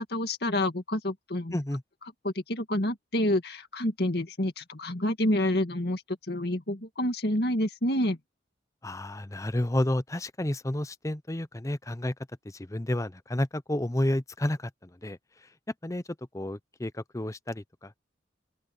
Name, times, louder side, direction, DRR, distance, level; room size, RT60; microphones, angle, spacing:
voice 1, 0.0-1.5 2.2-6.0 6.3-8.2, left 1 dB, 55° left, 2.1 m, -28 dB
voice 2, 8.8-12.1 12.4-15.2 15.8-16.0 16.3-18.0, left 1 dB, 15° left, 0.7 m, -31 dB
open air
head